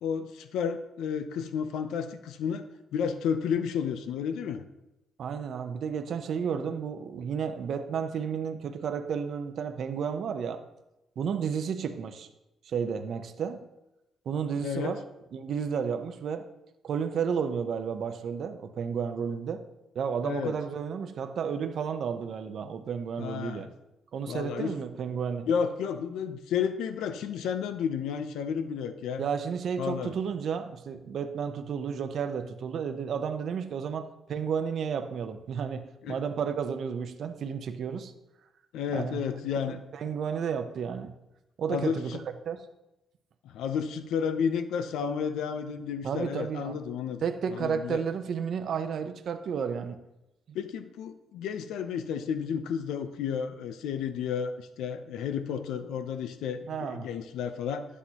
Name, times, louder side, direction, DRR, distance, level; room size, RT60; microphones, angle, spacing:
voice 1, 0.0-2.7 2.9-4.6 14.6-15.0 20.2-20.6 23.2-23.7 24.3-24.7 25.5-29.2 29.8-30.1 36.0-36.2 38.7-39.8 41.7-42.2 43.4-47.2 47.5-48.0 50.5-57.8, left 7 dB, 85° left, 9 dB, 0.6 m, -32 dB
voice 2, 5.2-10.6 11.2-12.3 12.6-13.6 14.3-15.0 15.3-16.5 16.8-19.6 19.9-23.7 24.1-25.5 29.2-38.1 38.9-39.2 39.7-41.1 41.6-42.2 42.5-42.7 46.0-46.8 47.2-50.0 50.5-50.6 56.7-57.1, right 7 dB, 65° right, 7 dB, 0.8 m, -32 dB
11.0 x 8.3 x 2.9 m, 0.92 s
cardioid pair, 90°, 0 cm